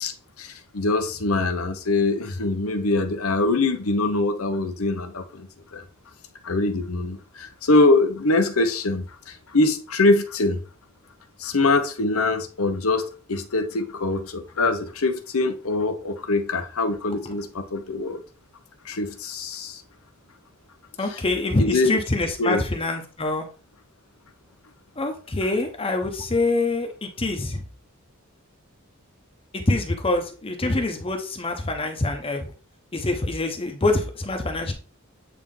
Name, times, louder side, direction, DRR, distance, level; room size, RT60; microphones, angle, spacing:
voice 1, 0.0-5.8 6.4-10.6 11.4-18.2 18.8-19.8 21.1-21.2 21.6-21.9 22.4-22.6, left 2 dB, 85° left, 0.9 m, -23 dB
voice 2, 21.0-23.4 25.0-27.6 29.5-32.5 32.9-34.7, left 2 dB, 25° left, 0.9 m, -25 dB
8.5 x 2.9 x 3.7 m
head